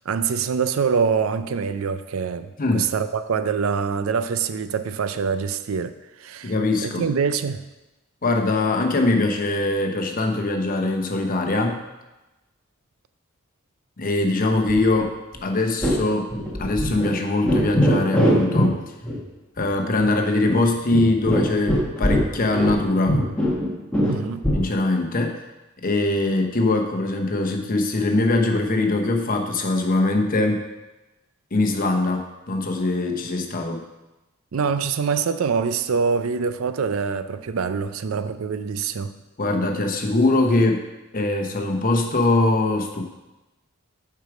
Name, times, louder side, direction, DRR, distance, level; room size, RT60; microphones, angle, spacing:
voice 1, 0.1-5.9 6.2-6.5 6.8-7.6 24.1-24.4 34.5-39.1, right 6 dB, 80° right, 11 dB, 0.4 m, -24 dB
voice 2, 6.4-7.1 8.2-11.8 14.0-15.1 15.4-16.3 16.6-18.8 19.6-23.2 24.5-25.4 25.8-30.6 31.5-33.8 39.4-40.8 41.1-43.0, left 2 dB, 45° left, 3 dB, 0.9 m, -22 dB
sound 1, 14.7-15.1 15.3-15.4 15.8-16.0 16.3-17.1 17.4-18.7 19.0-19.2 19.6-19.7 20.0-20.1 20.5-22.8 23.1-24.7, equal, 5° left, 1.5 m, -22 dB
8.1 x 4.7 x 5.0 m, 1.0 s
head